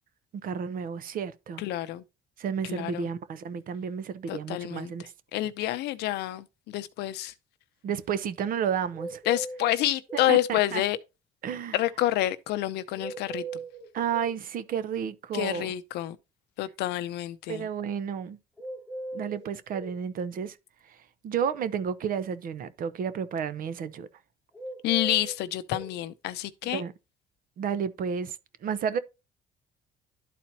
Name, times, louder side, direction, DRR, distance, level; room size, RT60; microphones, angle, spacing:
voice 1, 0.4-1.6 2.4-5.0 7.8-9.2 10.3-10.8 11.4-11.8 13.9-15.7 17.5-18.4 19.1-20.6 21.2-24.1 26.7-26.9 27.6-28.4 28.6-29.0, right 7 dB, 55° right, 0.8 m, -31 dB
voice 2, 1.6-2.0 2.6-3.1 4.3-4.9 5.3-7.3 9.3-11.0 11.7-13.4 15.3-16.2 16.6-17.7 24.8-26.8, left 15 dB, 80° left, 0.7 m, -28 dB
sound 1, 8.9-10.3 13.0-14.4 18.6-20.0 24.5-25.9, right 3 dB, 5° left, 1.1 m, -39 dB
12.0 x 4.2 x 2.8 m
cardioid pair, 110°, 17 cm